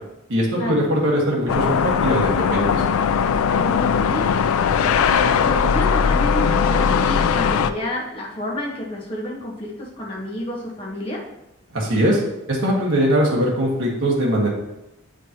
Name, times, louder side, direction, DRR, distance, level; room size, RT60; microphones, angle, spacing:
voice 1, 0.3-2.8 11.7-12.2 12.5-14.5, equal, 65° right, -4 dB, 1.4 m, -21 dB
sound 1, 1.5-7.7, left 6 dB, 90° left, 0.3 m, -19 dB
voice 2, 3.5-4.3 4.8-11.2, equal, 25° left, -4 dB, 1.3 m, -30 dB
7.7 x 5.0 x 2.9 m, 0.92 s
head